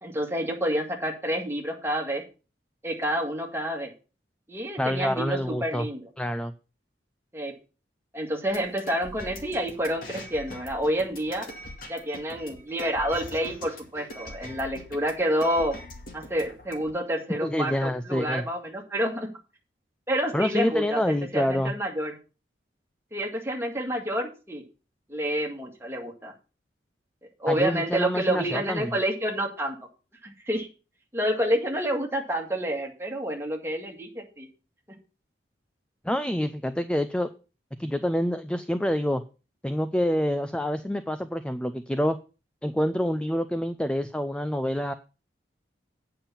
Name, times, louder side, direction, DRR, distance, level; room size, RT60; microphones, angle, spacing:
voice 1, 0.0-2.2 2.8-3.9 4.5-6.0 7.3-7.5 8.1-11.5 11.9-15.8 16.1-19.3 20.1-21.0 21.3-22.1 23.1-24.6 25.1-26.3 27.4-29.8 30.2-30.7 31.1-34.5, equal, 15° right, 0 dB, 2.0 m, -28 dB
voice 2, 4.8-5.9 6.2-6.5 17.4-18.4 20.3-21.7 27.5-29.0 36.0-37.3 37.8-39.2 39.6-42.2 42.6-44.9, equal, 5° left, 10 dB, 0.4 m, -27 dB
sound 1, 8.5-16.9, left 1 dB, 50° left, 2.2 m, -42 dB
8.7 x 5.7 x 7.0 m, 0.33 s
head